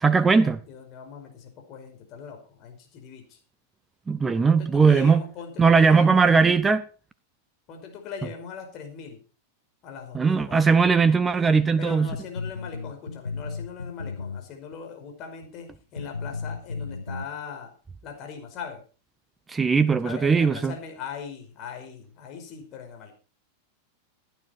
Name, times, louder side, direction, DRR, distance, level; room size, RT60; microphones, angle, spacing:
voice 1, 0.0-0.6 4.1-5.2 5.6-6.8 10.1-12.1 19.5-20.7, right 5 dB, 15° right, 0.7 m, -19 dB
voice 2, 0.7-3.4 4.4-6.4 7.7-9.2 9.8-10.7 11.8-17.7 18.0-18.8 20.0-23.1, left 6 dB, 35° left, 5.2 m, -40 dB
sound 1, 12.1-14.7 15.4-15.5 16.0-17.3, left 4 dB, 80° left, 0.6 m, -34 dB
16.0 x 10.0 x 4.5 m
figure-of-eight pair, 90°, 0 cm